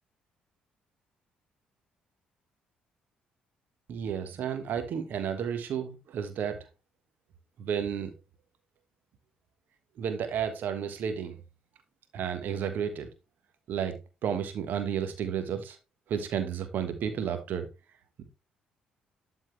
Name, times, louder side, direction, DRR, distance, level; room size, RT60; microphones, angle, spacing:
voice 1, 3.9-6.7 7.6-8.1 10.0-11.3 12.1-13.1 13.7-13.9 14.2-15.8 16.1-17.7, right 8 dB, 55° right, 8 dB, 1.5 m, -32 dB
12.0 x 4.4 x 3.3 m, 0.27 s
figure-of-eight pair, 45°, 4 cm